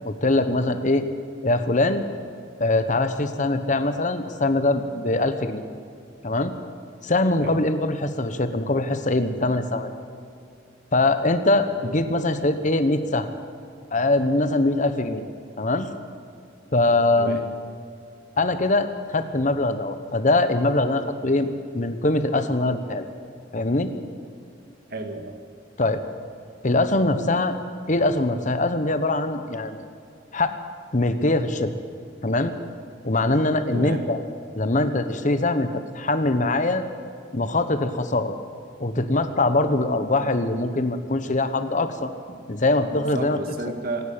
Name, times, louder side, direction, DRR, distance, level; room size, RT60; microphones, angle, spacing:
voice 1, 0.0-1.1 1.4-2.0 2.6-5.6 6.2-6.5 7.0-9.9 10.9-13.3 13.9-15.2 15.6-15.9 16.7-17.4 18.4-23.1 23.5-23.9 25.8-26.0 26.6-27.6 27.9-29.8 30.3-30.6 30.9-31.7 32.2-32.5 33.0-34.2 34.5-36.8 37.3-38.4 38.8-42.1 42.5-43.4, left 2 dB, 40° left, 10 dB, 1.2 m, -22 dB
voice 2, 11.7-12.1 17.2-17.4 24.9-25.4 33.7-34.1 42.3-42.4 42.9-44.1, right 2 dB, 55° right, 5 dB, 2.0 m, -33 dB
25.5 x 11.5 x 8.9 m, 2.4 s
head